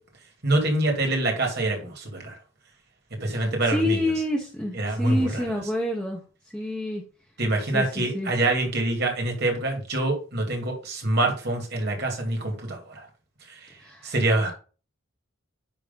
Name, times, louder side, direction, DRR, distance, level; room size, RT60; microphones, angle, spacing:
voice 1, 0.4-2.3 3.2-4.1 4.7-5.4 7.4-13.1 13.5-13.7 14.0-14.5, right 2 dB, 50° right, 2 dB, 2.5 m, -25 dB
voice 2, 3.3-6.2 6.5-7.0 7.7-8.3 13.8-14.1, left 1 dB, 5° left, -2 dB, 1.4 m, -28 dB
10.0 x 3.4 x 5.3 m, 0.36 s
head